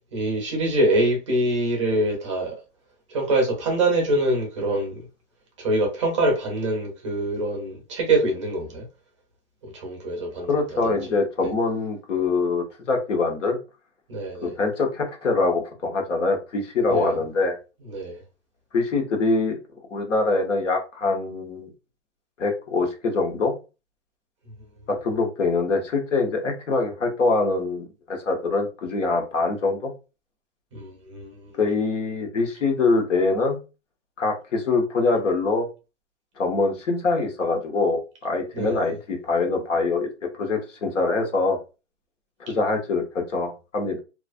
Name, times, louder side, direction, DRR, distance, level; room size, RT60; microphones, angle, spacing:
voice 1, 0.1-2.6 3.1-5.0 5.6-8.8 9.6-11.0 14.1-14.5 16.9-17.1 17.9-18.2 24.4-24.5 30.7-31.5 38.5-39.0, right 1 dB, 25° right, 0.6 m, -25 dB
voice 2, 10.5-13.6 14.4-17.5 18.7-19.6 19.9-21.7 22.4-23.5 24.9-29.9 31.6-33.6 34.2-35.7 36.4-40.1 40.3-41.6 42.4-44.0, left 3 dB, 85° left, 1.0 m, -24 dB
2.4 x 2.1 x 2.4 m
hypercardioid pair, 165°, 36 cm